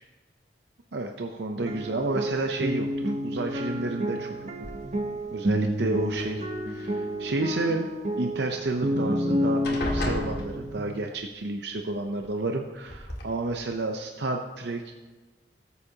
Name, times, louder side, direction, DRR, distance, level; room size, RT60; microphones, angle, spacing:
voice 1, 0.9-4.7 5.3-7.9 8.1-14.9, right 2 dB, 65° right, 3 dB, 0.7 m, -31 dB
sound 1, 1.6-10.9, equal, 40° right, 1.0 m, -30 dB
sound 2, 4.6-5.2 6.1-6.9 8.7-8.8 9.1-9.3 9.6-11.1 12.2-12.3 12.9-13.2, left 1 dB, 60° left, 2.1 m, -34 dB
19.0 x 8.3 x 2.9 m, 1.2 s
head